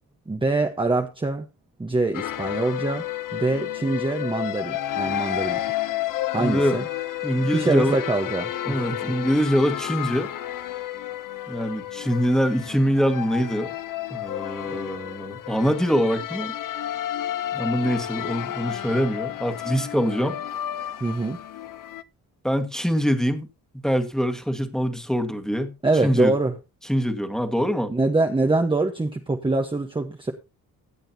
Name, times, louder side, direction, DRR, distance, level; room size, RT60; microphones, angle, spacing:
voice 1, 0.3-1.4 1.8-3.0 3.3-5.6 6.3-6.9 7.5-9.0 21.0-21.4 25.8-26.5 27.9-30.3, right 2 dB, 15° right, 1.1 m, -24 dB
sound 1, 2.1-22.0, left 12 dB, 65° left, 0.8 m, -31 dB
voice 2, 6.4-6.8 7.2-8.0 8.7-10.3 11.5-13.7 14.1-16.6 17.5-20.4 22.4-23.5 23.8-25.7 26.0-26.3 26.9-27.9, equal, ahead, 1.7 m, -24 dB
16.5 x 8.9 x 2.8 m
cardioid pair, 95°, 35 cm